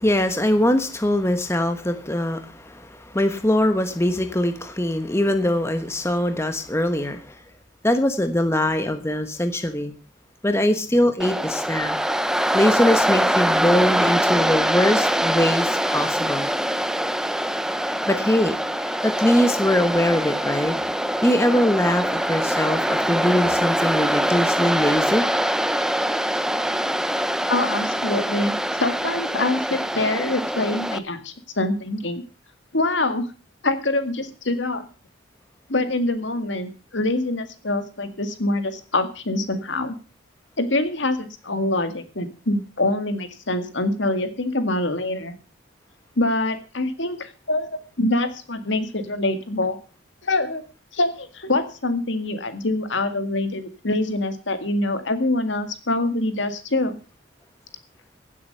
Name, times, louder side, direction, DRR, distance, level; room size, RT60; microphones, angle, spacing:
voice 1, 0.0-7.4 7.8-9.9 10.4-12.0 12.5-16.5 18.1-18.6 18.8-20.8 21.2-25.2, left 1 dB, 15° left, 8 dB, 1.2 m, -22 dB
Waves surf, 11.2-31.0, equal, 5° right, 0.6 m, -23 dB
voice 2, 27.5-32.2 32.7-33.3 33.6-34.9 35.7-40.0 40.6-45.3 46.2-49.8 50.2-50.6 50.9-57.0, left 2 dB, 65° left, 9 dB, 2.0 m, -25 dB
16.0 x 7.9 x 6.7 m, 0.36 s
head